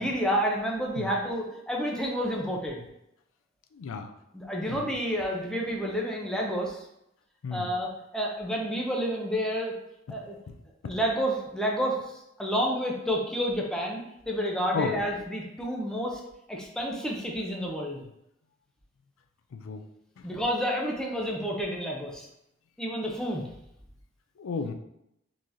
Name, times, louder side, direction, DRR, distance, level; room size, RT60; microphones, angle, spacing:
voice 1, 0.0-2.8 4.3-6.8 7.5-9.7 10.1-10.4 10.8-12.0 12.4-16.2 16.5-18.0 20.2-22.3 22.8-23.5, equal, 5° left, -1 dB, 0.5 m, -29 dB
voice 2, 3.7-4.1 4.7-4.8 7.4-7.7 10.5-10.6 10.8-10.9 14.7-14.9 19.5-19.8 24.4-24.7, left 5 dB, 90° left, 8 dB, 0.4 m, -33 dB
3.8 x 3.0 x 2.6 m, 0.81 s
head